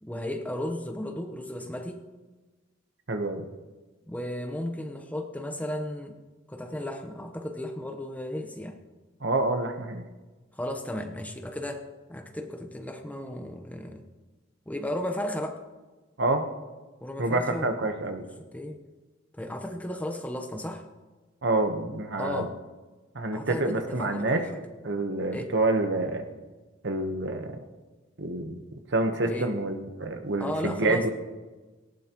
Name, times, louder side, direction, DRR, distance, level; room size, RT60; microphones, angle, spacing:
voice 1, 0.0-2.0 4.1-6.2 6.5-8.8 10.5-14.0 14.7-15.6 17.0-17.9 18.5-18.8 19.3-20.8 22.2-22.6 23.3-24.6 25.3-25.5 29.2-29.5 30.4-31.1, left 1 dB, 10° left, 5 dB, 0.9 m, -34 dB
voice 2, 3.1-3.4 9.2-10.0 16.2-16.4 17.2-18.2 21.4-22.5 23.1-24.4 24.8-26.3 26.8-27.6 28.2-28.6 28.9-31.1, right 2 dB, 60° right, 6 dB, 1.1 m, -27 dB
18.5 x 16.5 x 3.0 m, 1.3 s
head